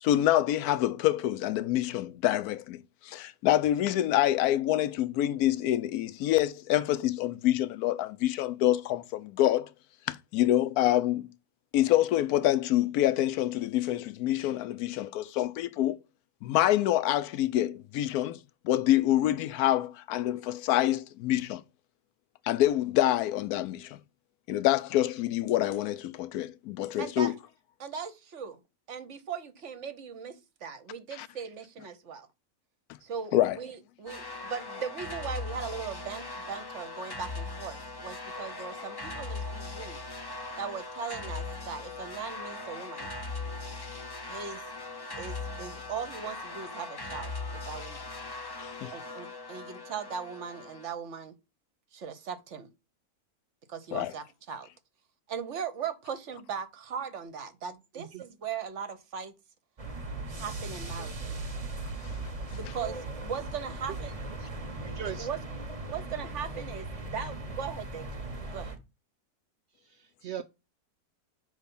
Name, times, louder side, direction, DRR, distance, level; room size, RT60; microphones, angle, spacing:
voice 1, 0.0-9.7 10.1-11.3 11.7-16.0 16.4-18.4 18.6-21.6 22.5-24.0 24.5-27.3 31.2-31.3 33.3-33.6 48.6-48.9 53.9-54.1, left 13 dB, 75° left, 1.1 m, -26 dB
voice 2, 27.0-27.3 27.8-28.6 28.9-30.4 30.6-32.3 33.0-40.0 40.6-43.1 44.3-44.6 45.2-48.0 48.9-51.3 51.9-52.7 53.7-54.7 55.3-59.3 60.4-61.5 62.5-64.1 65.2-65.4 65.8-68.2 68.5-68.7, right 6 dB, 55° right, 1.0 m, -39 dB
sound 1, 34.1-50.9, left 3 dB, 40° left, 0.3 m, -39 dB
sound 2, 59.8-68.8, right 2 dB, 25° right, 0.9 m, -38 dB
voice 3, 65.0-65.3 70.0-70.4, right 10 dB, 70° right, 0.6 m, -38 dB
5.4 x 3.5 x 5.3 m
omnidirectional pair, 1.6 m